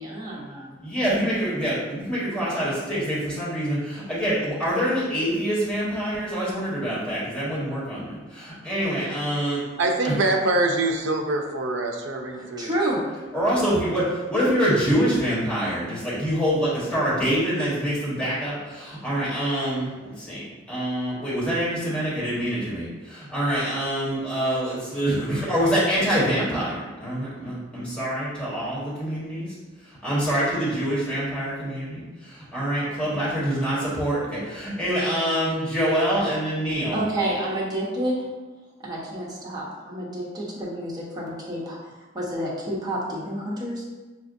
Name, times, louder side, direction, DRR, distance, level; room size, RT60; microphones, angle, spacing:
voice 1, 0.0-0.8 12.4-13.0 36.9-38.2 38.8-43.8, right 1 dB, 20° right, -5 dB, 0.9 m, -29 dB
voice 2, 0.8-9.6 10.0-10.1 13.3-26.7 27.0-29.5 30.0-37.0, equal, 5° left, -10 dB, 1.4 m, -25 dB
voice 3, 9.8-12.7, right 2 dB, 70° right, 3 dB, 0.5 m, -24 dB
5.7 x 2.4 x 2.5 m, 1.2 s
head